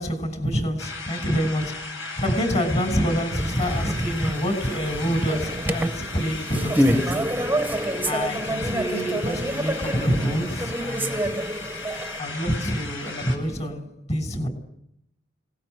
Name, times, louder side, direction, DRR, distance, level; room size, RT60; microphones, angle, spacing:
voice 1, 0.0-7.3 8.0-11.3 12.2-14.5, equal, 35° left, 6.0 m, -27 dB
sound 1, 0.8-13.4, left 3 dB, 80° left, 7.8 m, -36 dB
sound 2, 3.3-12.2, right 1 dB, 10° right, 1.1 m, -27 dB
30.0 x 19.5 x 8.0 m
head